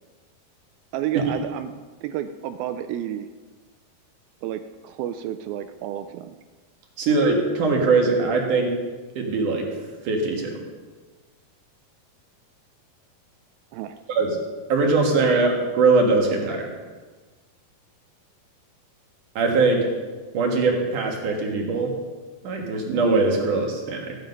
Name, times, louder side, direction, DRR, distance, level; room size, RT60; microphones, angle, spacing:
voice 1, 0.9-1.7 2.0-3.3 4.4-6.4 13.7-14.0 15.2-15.4, right 11 dB, 80° right, 9 dB, 2.2 m, -31 dB
voice 2, 7.0-8.7 9.2-9.7 10.0-10.5 14.1-14.3 14.7-16.7 19.4-19.9 20.3-21.9 22.4-24.2, right 3 dB, 60° right, 1 dB, 3.0 m, -21 dB
15.0 x 9.9 x 5.3 m, 1.4 s
omnidirectional pair, 4.5 m